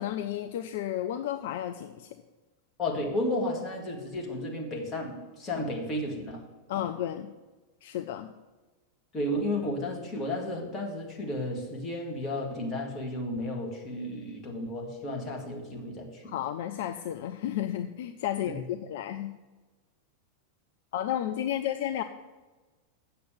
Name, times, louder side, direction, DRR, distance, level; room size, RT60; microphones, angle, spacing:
voice 1, 0.0-2.2 6.7-7.3 7.8-8.3 16.3-19.3 20.9-22.0, left 11 dB, 55° left, 8 dB, 0.5 m, -32 dB
voice 2, 2.8-6.5 6.7-6.9 9.1-16.3 18.5-18.6, left 1 dB, 20° left, -1 dB, 2.2 m, -33 dB
7.8 x 6.7 x 8.1 m, 1.2 s
figure-of-eight pair, 90°, 0 cm